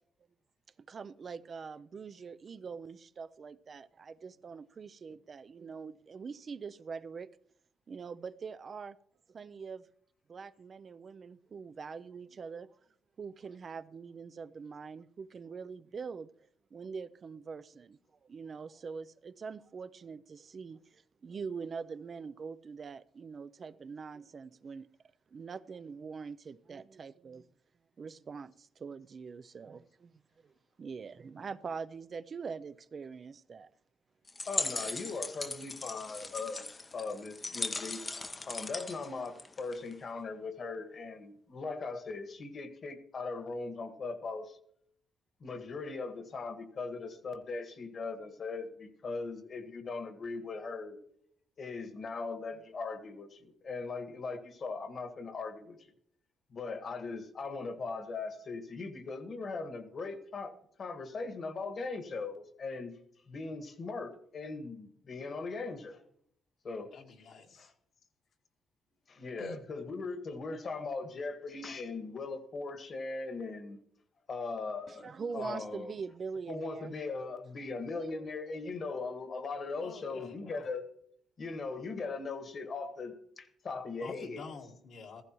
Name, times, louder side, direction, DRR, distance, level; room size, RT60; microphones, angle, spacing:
voice 1, 0.9-7.3 7.9-9.0 9.3-9.8 10.3-12.8 13.2-16.3 16.7-24.9 25.3-27.5 28.0-30.5 30.8-33.7 74.9-76.9 77.7-78.7, right 5 dB, 45° right, 0.4 m, -44 dB
sound 1, 34.3-39.9, left 3 dB, 25° left, 0.6 m, -39 dB
voice 2, 34.4-38.0 38.5-44.6 45.4-51.0 51.6-55.8 56.5-62.9 63.3-66.0 66.6-66.9 67.6-67.7 69.1-73.8 74.3-75.9 76.5-80.9 81.4-84.4, left 4 dB, 50° left, 1.6 m, -39 dB
voice 3, 66.9-67.7 69.4-69.6 79.8-80.7 84.0-85.2, left 4 dB, 65° left, 1.7 m, -48 dB
15.0 x 15.0 x 3.0 m
cardioid pair, 90°, 0 cm